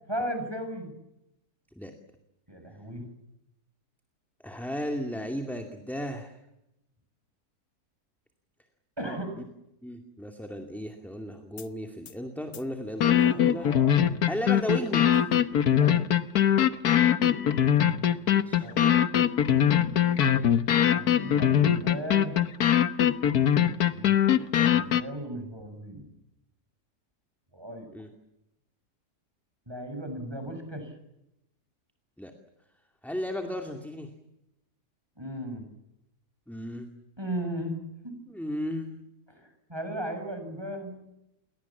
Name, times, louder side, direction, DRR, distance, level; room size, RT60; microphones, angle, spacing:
voice 1, 0.1-0.9 2.5-3.1 9.0-9.3 13.6-13.9 15.7-15.9 18.6-18.9 20.8-22.4 23.9-26.1 27.5-27.9 29.7-30.9 35.2-35.7 37.2-38.2 39.3-41.0, right 1 dB, 15° right, 6 dB, 6.8 m, -36 dB
voice 2, 4.4-6.4 9.0-9.1 9.8-13.7 14.3-15.3 18.3-18.7 27.9-28.1 32.2-32.3 33.0-34.1 36.5-36.9 38.3-39.0, equal, ahead, 4 dB, 2.3 m, -35 dB
sound 1, 11.6-11.7 12.1-12.2 12.5-12.6 13.0-25.0, left 10 dB, 75° left, 1.7 m, -22 dB
29.0 x 23.5 x 7.4 m, 0.87 s
omnidirectional pair, 1.7 m